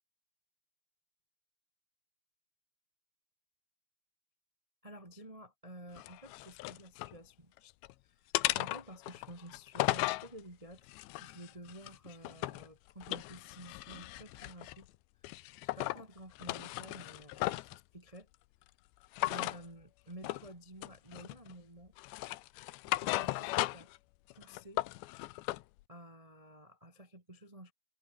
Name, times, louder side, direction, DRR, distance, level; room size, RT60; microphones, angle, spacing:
voice 1, 4.8-7.8 8.0-10.9 11.2-14.9 15.6-18.3 19.3-21.9 23.0-23.9 24.3-24.8 25.9-27.7, right 1 dB, 50° right, 0.4 m, -52 dB
sound 1, 6.0-7.2 7.6-7.9 8.3-10.3 10.9-12.7 13.0-14.8 15.2-16.0 16.4-17.8 19.1-19.6 20.2-20.5 20.8-21.5 22.0-24.0 24.3-25.6, left 19 dB, 85° left, 3.0 m, -36 dB
omnidirectional pair, 5.2 m